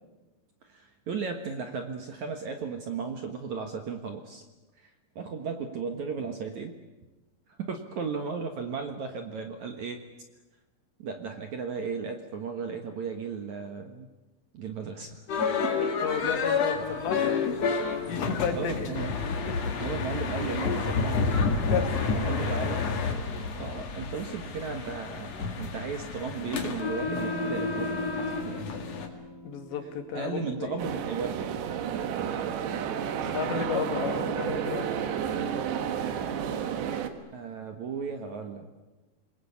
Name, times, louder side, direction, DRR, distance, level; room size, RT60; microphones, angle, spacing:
voice 1, 0.6-4.4 4.8-6.8 7.5-10.0 11.0-14.1 14.5-15.2 15.6-16.3 18.5-19.1 19.8-22.8 23.6-28.1 28.4-28.7 30.1-31.5 31.9-32.1 33.5-33.7 37.3-38.7, right 5 dB, 60° right, 5 dB, 2.2 m, -35 dB
sound 1, 15.3-29.1, left 5 dB, 45° left, 2.7 m, -30 dB
voice 2, 16.0-17.6 18.1-18.9 21.7-21.9 29.4-30.9 33.3-34.9, left 7 dB, 80° left, 5 dB, 4.4 m, -32 dB
Electric guitar / Strum, 27.1-32.2, equal, 5° left, 2.5 m, -42 dB
sound 2, 30.8-37.1, right 8 dB, 75° right, 3.7 m, -31 dB
27.5 x 21.0 x 8.6 m, 1.1 s
omnidirectional pair, 5.1 m